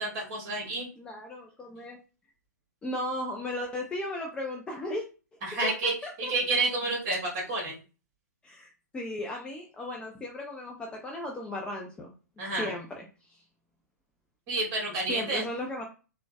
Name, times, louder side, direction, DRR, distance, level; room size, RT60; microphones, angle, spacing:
voice 1, 0.0-0.9 5.4-7.8 12.4-12.7 14.5-15.4, right 2 dB, 35° right, -1 dB, 1.7 m, -30 dB
voice 2, 1.0-2.0 2.8-5.1 5.6-6.3 8.4-12.1 12.6-13.4 15.1-15.8, left 1 dB, 10° left, 0 dB, 0.4 m, -36 dB
3.8 x 2.1 x 2.3 m, 0.34 s
figure-of-eight pair, 120°, 10 cm